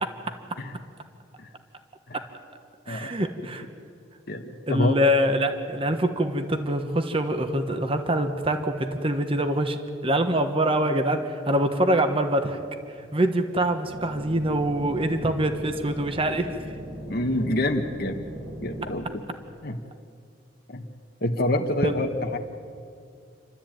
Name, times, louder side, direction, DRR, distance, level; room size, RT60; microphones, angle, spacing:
voice 1, 2.9-3.7 4.7-12.6 13.0-16.6 21.8-21.9, right 1 dB, 30° right, 7 dB, 1.3 m, -24 dB
voice 2, 4.3-4.9 17.1-18.2 18.6-19.2 19.6-19.8 20.7-20.8 21.2-22.4, left 1 dB, 55° left, 4 dB, 1.3 m, -27 dB
sound 1, 13.8-18.9, right 1 dB, 65° right, 5.0 m, -39 dB
28.5 x 12.5 x 9.1 m, 2.3 s
head